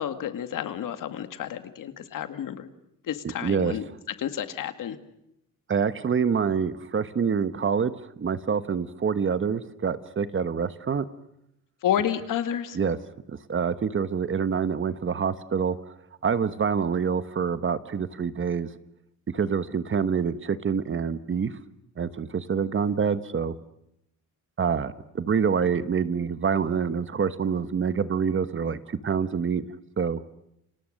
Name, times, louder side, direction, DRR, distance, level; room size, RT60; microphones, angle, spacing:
voice 1, 0.0-2.7 3.1-3.9 4.2-5.0 11.8-12.8, left 10 dB, 75° left, 9 dB, 2.1 m, -30 dB
voice 2, 3.4-3.8 5.7-11.0 12.7-13.0 13.3-15.7 16.2-18.7 19.3-21.5 22.0-23.5 24.6-29.6 30.0-30.2, right 6 dB, 40° right, 13 dB, 1.2 m, -26 dB
29.5 x 26.5 x 6.6 m, 0.81 s
cardioid pair, 120°, 32 cm